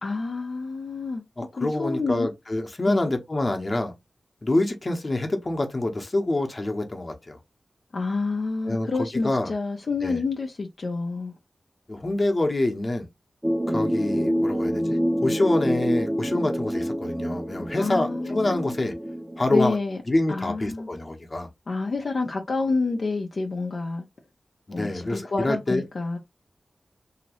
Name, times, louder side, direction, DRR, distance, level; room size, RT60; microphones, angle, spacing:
voice 1, 0.0-1.2 1.6-2.3 2.8-3.1 7.9-11.3 17.8-18.7 19.5-20.0 20.3-20.9 21.7-24.0 24.7-26.2, left 3 dB, 65° left, 0.6 m, -28 dB
voice 2, 1.4-3.9 4.4-7.4 8.7-9.5 10.0-10.2 11.9-13.1 13.7-18.9 19.4-19.8 20.1-21.5 24.7-25.8, left 2 dB, 45° left, 1.0 m, -26 dB
sound 1, 13.4-19.7, equal, 10° right, 0.7 m, -27 dB
2.9 x 2.8 x 2.9 m
cardioid pair, 50°, 0 cm